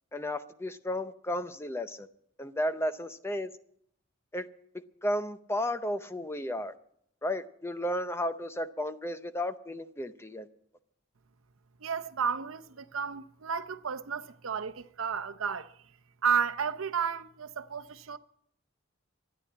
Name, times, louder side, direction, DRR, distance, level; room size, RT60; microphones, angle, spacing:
voice 1, 0.1-2.1 2.4-3.5 4.3-4.5 4.7-6.7 7.2-10.5, left 1 dB, 10° left, 0.6 m, -33 dB
voice 2, 11.8-15.7 16.2-18.2, right 6 dB, 90° right, 0.7 m, -32 dB
13.0 x 9.8 x 8.5 m
head